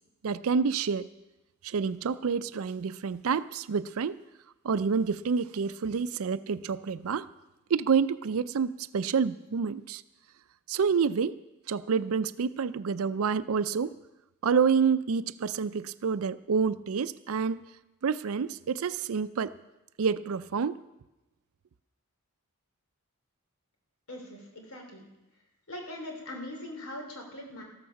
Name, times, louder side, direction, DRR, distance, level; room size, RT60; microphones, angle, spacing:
voice 1, 0.2-1.1 1.6-4.2 4.6-7.3 7.7-10.0 10.7-11.4 11.7-14.0 14.4-17.7 18.0-19.5 20.0-20.8, right 6 dB, 75° right, 14 dB, 0.4 m, -28 dB
voice 2, 24.1-25.0 25.7-27.6, left 1 dB, 80° left, 2 dB, 3.2 m, -41 dB
13.5 x 13.5 x 5.8 m, 0.99 s
head